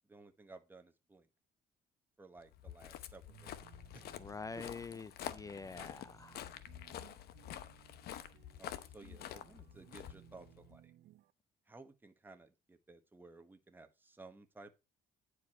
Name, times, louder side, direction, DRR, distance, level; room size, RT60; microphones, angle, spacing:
voice 1, 0.1-1.3 2.2-3.7 3.9-4.0 4.5-4.6 8.6-10.9 11.7-14.7, right 3 dB, 10° right, 1.2 m, -56 dB
Walk footsteps, 2.5-10.8, left 11 dB, 70° left, 0.8 m, -48 dB
sound 1, 3.3-11.3, right 12 dB, 75° right, 0.7 m, -63 dB
voice 2, 4.2-6.5, left 4 dB, 20° left, 0.3 m, -46 dB
9.5 x 4.8 x 4.2 m
cardioid pair, 110°, 17 cm